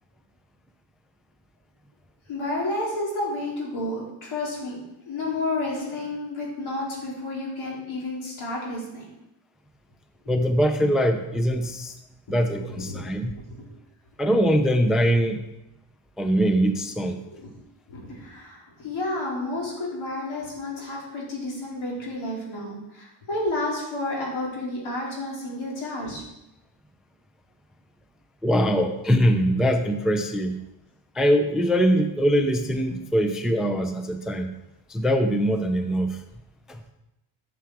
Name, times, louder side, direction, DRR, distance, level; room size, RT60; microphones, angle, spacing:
voice 1, 2.3-4.8 5.1-9.1 12.7-13.0 17.4-17.5 17.9-26.2, left 2 dB, 75° left, -4 dB, 4.0 m, -31 dB
voice 2, 10.3-11.9 12.3-13.3 14.2-15.4 16.2-17.2 28.4-30.6 31.2-34.5 34.9-36.2 36.7-36.8, equal, ahead, 7 dB, 0.4 m, -22 dB
11.5 x 6.8 x 4.7 m, 0.92 s
wide cardioid pair, 175°, 48 cm